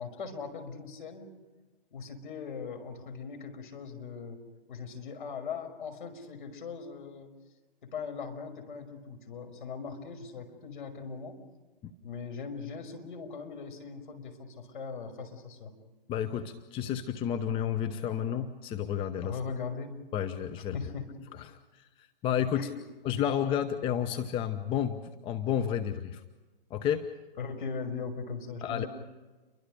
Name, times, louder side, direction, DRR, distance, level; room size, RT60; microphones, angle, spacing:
voice 1, 0.0-1.3 1.9-4.4 4.7-7.3 7.8-11.4 12.0-15.7 19.2-20.0 20.7-21.2 22.5-22.8 27.4-28.9, left 5 dB, 55° left, 5 dB, 5.7 m, -40 dB
voice 2, 16.1-19.3 20.1-20.8 21.5-21.6 22.2-22.7 23.0-26.2 26.7-27.1 28.6-28.8, left 9 dB, 15° left, 7 dB, 0.9 m, -31 dB
29.5 x 24.5 x 5.2 m, 1.2 s
figure-of-eight pair, 125°, 30 cm